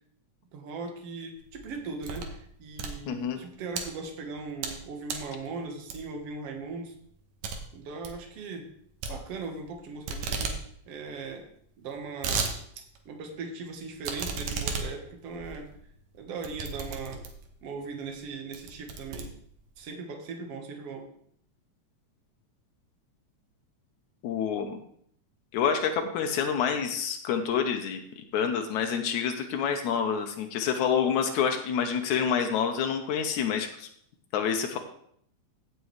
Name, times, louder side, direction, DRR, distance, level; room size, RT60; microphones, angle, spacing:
voice 1, 0.5-6.9 7.7-8.7 9.1-10.6 10.9-11.5 11.8-12.5 13.1-15.7 16.2-17.2 17.6-19.3 19.8-21.1, right 4 dB, 60° right, 3 dB, 2.2 m, -39 dB
sound 1, 1.4-2.4 2.7-3.8 4.3-4.8 5.1-5.3 5.9-6.3 6.6-6.7 7.0-7.1 7.4-7.6 7.9-8.2 9.0-9.8 10.1-10.6 10.9-11.0 11.2-11.3 11.8-12.5 13.0-13.1 14.0-17.5 18.1-18.2 18.5-19.8, right 5 dB, 80° right, 2.5 m, -34 dB
voice 2, 3.1-3.4 24.2-24.8 25.5-33.9 34.3-34.8, left 7 dB, 90° left, 5 dB, 2.2 m, -28 dB
16.0 x 6.9 x 3.2 m, 0.65 s
omnidirectional pair, 3.3 m